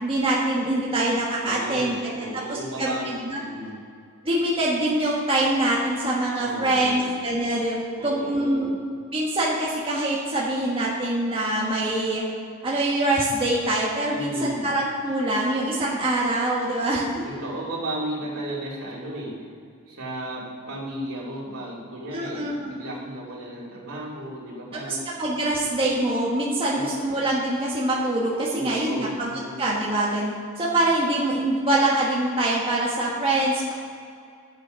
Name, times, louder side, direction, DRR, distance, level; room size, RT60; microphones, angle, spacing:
voice 1, 0.0-2.2 2.5-3.4 4.2-7.8 8.0-8.7 9.1-12.2 12.6-17.2 22.1-22.7 24.9-29.3 29.6-33.7, right 1 dB, 25° right, -5 dB, 1.4 m, -24 dB
voice 2, 1.4-3.8 6.4-7.2 8.0-8.7 14.1-14.7 17.2-19.4 19.9-25.1 25.4-25.5 26.7-26.9 28.5-29.7, right 1 dB, 70° right, -5 dB, 3.0 m, -34 dB
11.0 x 8.2 x 5.2 m, 2.3 s
head